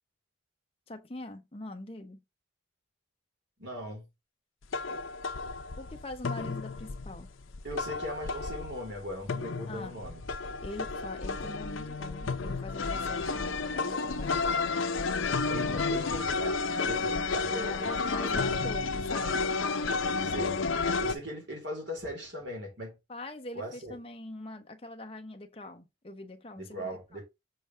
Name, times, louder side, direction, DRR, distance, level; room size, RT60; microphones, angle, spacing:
voice 1, 0.9-2.2 5.8-7.3 9.7-10.0 10.6-14.8 15.5-15.8 17.5-17.8 18.1-19.6 23.1-27.2, left 2 dB, 30° left, 0.9 m, -43 dB
voice 2, 3.6-4.1 7.6-10.2 15.5-17.9 18.2-18.4 20.2-20.6 21.0-23.0 23.5-24.0 26.6-27.2, equal, 60° right, 3.5 m, -39 dB
sound 1, 4.7-21.1, left 4 dB, 75° left, 0.7 m, -31 dB
7.0 x 4.6 x 3.3 m
head